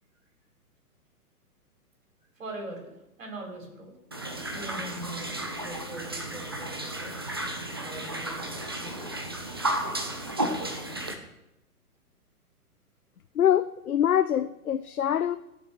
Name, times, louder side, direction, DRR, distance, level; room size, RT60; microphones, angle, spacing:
voice 1, 2.4-2.9 3.2-3.9 4.5-7.1 7.8-9.2, right 2 dB, 55° right, 4.5 m, -42 dB
sound 1, 4.1-11.1, right 1 dB, 20° right, 0.4 m, -33 dB
voice 2, 13.4-15.4, left 10 dB, 70° left, 0.6 m, -24 dB
15.5 x 6.7 x 4.6 m
figure-of-eight pair, 120°, 45 cm